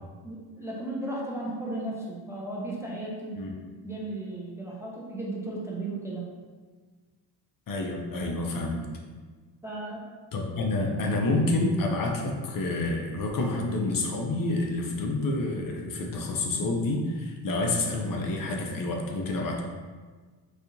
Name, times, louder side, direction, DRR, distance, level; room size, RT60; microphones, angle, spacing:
voice 1, 0.2-3.4 3.8-6.3 9.6-10.1, right 2 dB, 5° right, -5 dB, 0.4 m, -35 dB
voice 2, 7.7-8.8 10.3-19.6, left 2 dB, 50° left, 1 dB, 0.5 m, -28 dB
4.0 x 2.7 x 2.5 m, 1.4 s
wide cardioid pair, 145°, 44 cm